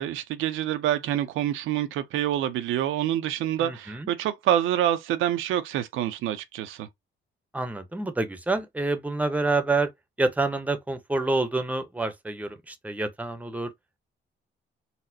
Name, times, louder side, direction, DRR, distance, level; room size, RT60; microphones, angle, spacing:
voice 1, 0.0-6.9, right 11 dB, 85° right, 0.5 m, -27 dB
voice 2, 3.6-4.1 7.5-9.9 10.2-13.7, right 3 dB, 5° right, 0.7 m, -27 dB
4.0 x 2.0 x 2.6 m
cardioid pair, 90°, 20 cm